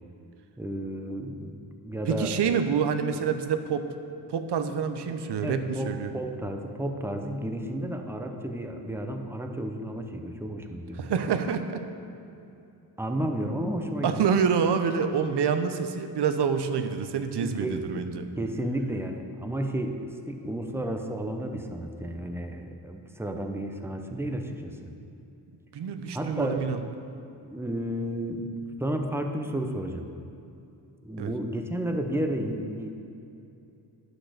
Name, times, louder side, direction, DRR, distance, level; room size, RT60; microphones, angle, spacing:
voice 1, 0.6-1.6 1.8-2.4 5.4-11.1 13.0-14.3 17.4-18.0 18.4-24.9 26.1-26.8 27.4-28.5 28.8-30.1 31.0-32.9, right 1 dB, 5° right, 4 dB, 0.8 m, -32 dB
voice 2, 2.0-3.9 4.3-6.1 11.0-11.8 14.0-18.3 25.7-26.8 31.2-31.3, right 6 dB, 70° right, 8 dB, 0.8 m, -27 dB
10.5 x 6.4 x 6.4 m, 2.7 s
wide cardioid pair, 110°, 42 cm